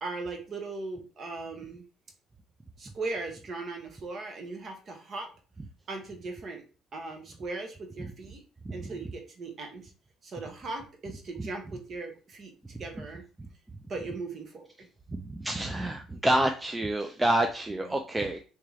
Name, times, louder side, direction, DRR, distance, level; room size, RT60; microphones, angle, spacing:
voice 1, 0.0-1.8 2.8-5.3 5.9-6.6 6.9-8.4 8.7-9.9 10.2-12.5 12.8-13.2 13.9-14.7 17.7-18.0, right 3 dB, 35° right, 3 dB, 0.9 m, -38 dB
voice 2, 15.3-18.4, right 1 dB, 10° right, 4 dB, 0.3 m, -27 dB
3.2 x 2.8 x 3.6 m, 0.35 s
cardioid pair, 155°, 0 cm